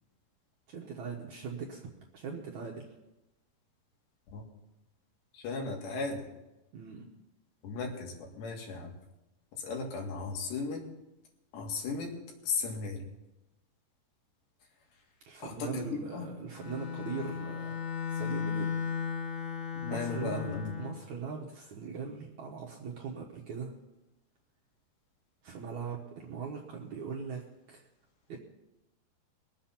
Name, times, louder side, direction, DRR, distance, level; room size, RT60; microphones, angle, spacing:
voice 1, 0.7-1.9 2.1-2.9 6.7-7.1 15.3-17.8 18.1-18.7 19.5-23.7 25.4-27.8 28.3-28.4, right 5 dB, 65° right, -2 dB, 1.9 m, -40 dB
voice 2, 5.3-6.3 7.6-8.9 9.5-10.9 11.5-12.2 12.4-13.0 15.4-16.3 19.8-20.8, left 4 dB, 90° left, 1 dB, 4.3 m, -36 dB
Bowed string instrument, 16.5-21.0, left 7 dB, 60° left, 2.5 m, -35 dB
21.0 x 7.9 x 5.8 m, 0.98 s
omnidirectional pair, 4.8 m